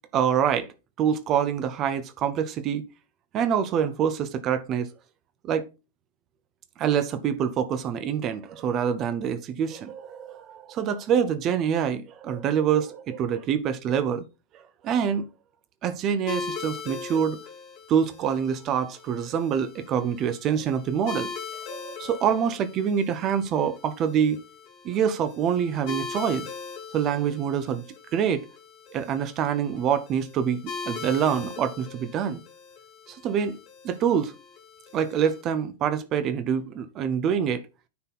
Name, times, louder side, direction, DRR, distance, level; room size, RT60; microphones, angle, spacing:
voice 1, 0.1-0.7 1.0-2.8 3.3-4.9 5.4-5.7 6.8-14.2 14.8-15.3 15.8-17.4 17.9-21.3 21.7-24.4 24.8-26.5 26.9-27.8 28.1-28.5 28.9-32.4 33.1-33.6 33.8-34.3 34.9-37.6, right 8 dB, 35° right, 0.8 m, -26 dB
sound 1, 16.3-35.4, left 5 dB, 40° left, 1.4 m, -40 dB
9.4 x 4.1 x 4.0 m
figure-of-eight pair, 90°, 0 cm